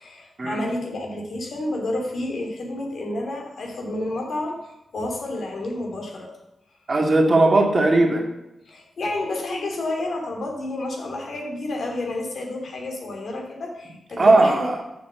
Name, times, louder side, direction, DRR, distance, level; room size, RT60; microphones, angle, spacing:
voice 1, 0.0-6.3 8.7-14.7, left 2 dB, 70° left, 1 dB, 2.7 m, -30 dB
voice 2, 6.9-8.2 14.2-14.9, right 2 dB, 45° right, 2 dB, 2.1 m, -18 dB
7.0 x 6.5 x 6.9 m, 0.91 s
cardioid pair, 60°, 0 cm